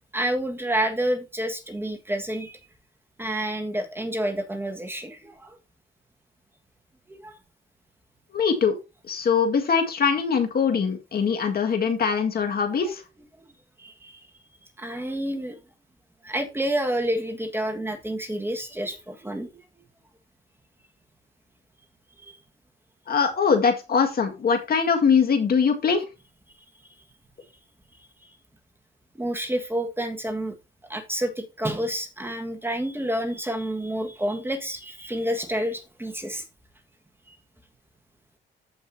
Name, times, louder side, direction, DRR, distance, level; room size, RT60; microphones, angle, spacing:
voice 1, 0.1-2.6 3.2-5.6 7.1-7.4 12.8-12.9 13.4-13.5 13.8-14.3 14.8-15.6 16.2-19.6 22.2-22.4 29.1-30.5 30.9-36.4 37.3-37.4, right 1 dB, 10° right, 4 dB, 1.6 m, -29 dB
voice 2, 8.3-8.8 9.1-13.0 23.1-26.1, left 6 dB, 50° left, 5 dB, 1.9 m, -22 dB
14.5 x 5.4 x 2.7 m, 0.27 s
cardioid pair, 90°, 20 cm